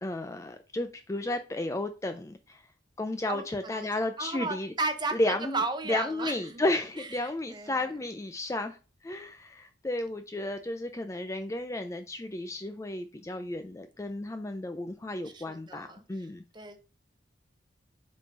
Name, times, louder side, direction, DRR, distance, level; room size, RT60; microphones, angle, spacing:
voice 1, 0.0-2.6 3.0-4.7 5.2-5.6 5.9-8.8 9.0-16.4, left 2 dB, 15° left, 0.3 m, -33 dB
voice 2, 3.3-6.6 7.0-7.8 15.2-16.3 16.5-16.8, right 3 dB, 25° right, 0.8 m, -35 dB
5.0 x 3.8 x 5.2 m
head